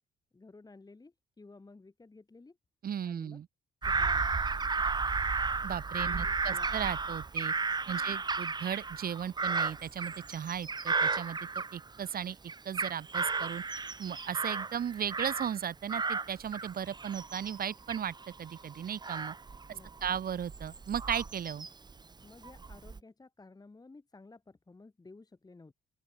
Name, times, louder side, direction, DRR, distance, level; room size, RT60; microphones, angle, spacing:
voice 1, 0.3-2.6 3.0-3.4 3.8-4.3 6.0-6.7 7.8-8.1 19.7-20.1 22.2-25.7, left 3 dB, 20° left, 1.7 m, -54 dB
voice 2, 2.8-3.5 5.6-7.5 7.9-12.4 12.6-13.6 14.0-19.3 19.7-21.7, right 9 dB, 50° right, 0.9 m, -36 dB
Bird vocalization bird call bird song / Crow, 3.8-12.1 12.5-15.6 15.9-21.9 22.4-23.0, right 4 dB, 20° right, 0.7 m, -34 dB
open air
cardioid pair, 90°, 20 cm